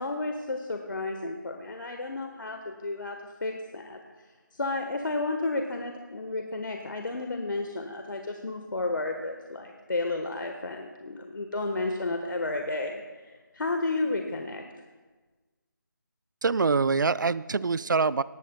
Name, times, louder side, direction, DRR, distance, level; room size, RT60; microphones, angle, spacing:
voice 1, 0.0-14.6, left 2 dB, 70° left, 4 dB, 1.2 m, -32 dB
voice 2, 16.4-18.2, right 4 dB, 65° right, 18 dB, 0.4 m, -24 dB
18.5 x 13.5 x 2.2 m, 1.3 s
figure-of-eight pair, 160°, 11 cm